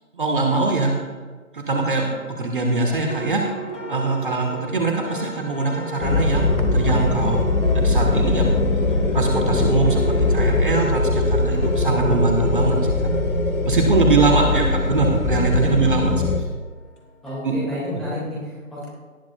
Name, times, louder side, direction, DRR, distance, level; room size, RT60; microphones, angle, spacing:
voice 1, 0.1-0.9 1.5-3.4 3.9-8.5 9.1-13.0 13.6-16.3 17.4-17.6, right 3 dB, 40° right, 2 dB, 1.2 m, -22 dB
sound 1, 2.4-18.0, right 1 dB, 55° left, 1.6 m, -37 dB
sound 2, 6.0-16.4, left 2 dB, 80° left, 1.5 m, -21 dB
voice 2, 17.2-18.9, left 1 dB, ahead, -8 dB, 1.8 m, -31 dB
17.5 x 11.0 x 2.2 m, 1.4 s
figure-of-eight pair, 145°, 42 cm